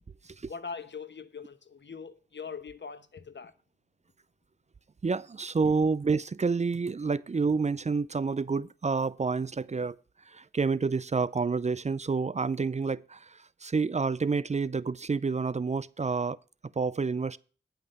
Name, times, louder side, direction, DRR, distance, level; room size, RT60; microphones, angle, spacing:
voice 1, 0.5-3.5, left 5 dB, 70° left, 1.0 m, -42 dB
voice 2, 5.0-10.0 10.3-16.4 16.8-17.4, right 4 dB, 35° right, 0.4 m, -29 dB
9.6 x 5.8 x 6.6 m
cardioid pair, 50°, 19 cm